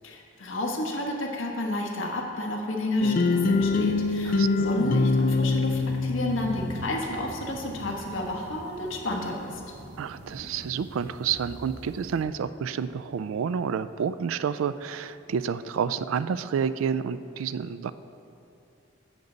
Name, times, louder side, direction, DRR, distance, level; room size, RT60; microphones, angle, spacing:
voice 1, 0.0-9.6, left 1 dB, 75° left, -1 dB, 1.5 m, -31 dB
sound 1, 3.0-7.0, left 3 dB, 45° left, 0.3 m, -24 dB
sound 2, 3.5-12.2, right 1 dB, 55° right, 0.7 m, -44 dB
voice 2, 4.2-5.0 10.0-17.9, right 7 dB, 80° right, 14 dB, 0.3 m, -29 dB
10.5 x 8.2 x 4.0 m, 2.9 s
head